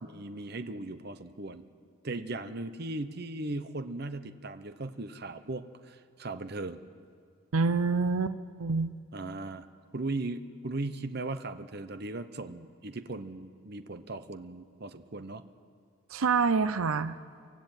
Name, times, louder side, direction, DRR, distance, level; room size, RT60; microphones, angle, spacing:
voice 1, 0.0-1.7 2.0-6.8 9.1-9.7 9.9-15.4, right 2 dB, 50° right, 10 dB, 0.8 m, -38 dB
voice 2, 7.5-8.9 16.1-17.2, right 4 dB, 85° right, 14 dB, 0.6 m, -27 dB
24.5 x 13.5 x 9.0 m, 2.3 s
head